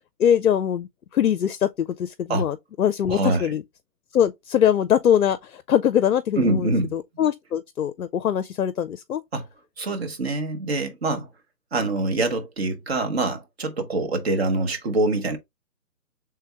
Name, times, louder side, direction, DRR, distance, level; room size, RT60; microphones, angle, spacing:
voice 1, 0.2-3.6 4.1-9.2, left 9 dB, 60° left, 0.5 m, -22 dB
voice 2, 3.1-3.6 6.4-6.9 9.3-9.5 9.8-11.3 11.7-15.4, right 2 dB, 40° right, 0.9 m, -25 dB
4.3 x 3.4 x 3.4 m
figure-of-eight pair, 150°, 49 cm